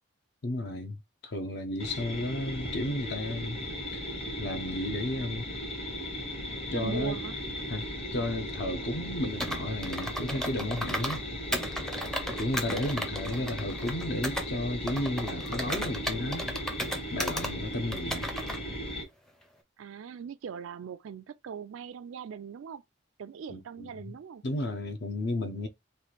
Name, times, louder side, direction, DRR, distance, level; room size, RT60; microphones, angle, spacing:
voice 1, 0.4-3.6 3.9-4.0 4.4-5.4 6.7-7.2 7.7-11.2 12.4-16.5 17.1-18.3 23.5-24.2 24.4-25.7, left 1 dB, 55° left, 0.6 m, -33 dB
sound 1, 1.8-19.0, equal, 30° left, 0.9 m, -37 dB
voice 2, 6.7-7.4 13.0-13.8 19.8-22.8 23.2-24.4, right 6 dB, 75° right, 0.3 m, -41 dB
Computer keyboard, 9.4-11.2 11.5-14.5 14.9-17.5 17.9-18.6, equal, 5° left, 0.5 m, -35 dB
3.1 x 2.4 x 4.1 m
head